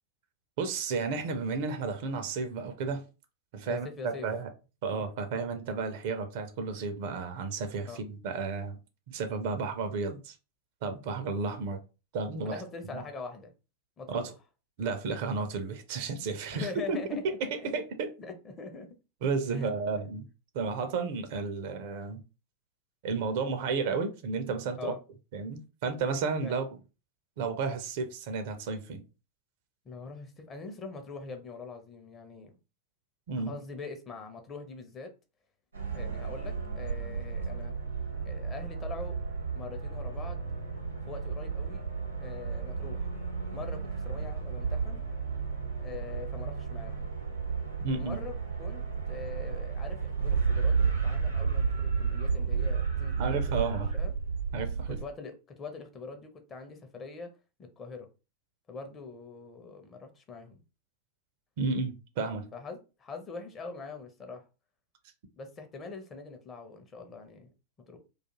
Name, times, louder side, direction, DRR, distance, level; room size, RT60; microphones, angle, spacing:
voice 1, 0.6-3.0 3.5-4.5 4.8-8.8 9.1-10.4 10.8-11.8 12.1-12.6 12.9-13.0 14.1-14.3 14.8-17.0 17.4-18.1 19.2-20.3 20.5-22.2 23.0-24.9 25.3-26.7 27.4-29.0 33.3-33.6 47.8-48.2 53.2-53.9 54.5-55.0 61.6-62.5, right 4 dB, 50° right, 0.5 m, -32 dB
voice 2, 3.6-4.3 7.9-8.0 12.4-13.5 14.0-14.3 16.5-17.8 18.2-18.9 19.5-19.8 24.8-25.0 26.4-26.6 29.8-32.5 33.5-35.1 35.9-37.7 38.2-39.2 39.5-40.4 41.1-41.8 42.2-43.1 43.5-45.0 45.8-47.1 47.9-48.3 48.6-53.7 53.9-54.1 54.9-57.3 57.6-58.1 58.7-60.6 62.5-64.4 65.4-67.5 67.9-68.0, left 4 dB, 25° left, 0.6 m, -43 dB
sound 1, 35.7-55.0, right 5 dB, 80° right, 0.8 m, -32 dB
2.3 x 2.3 x 2.9 m
figure-of-eight pair, 90°, 0 cm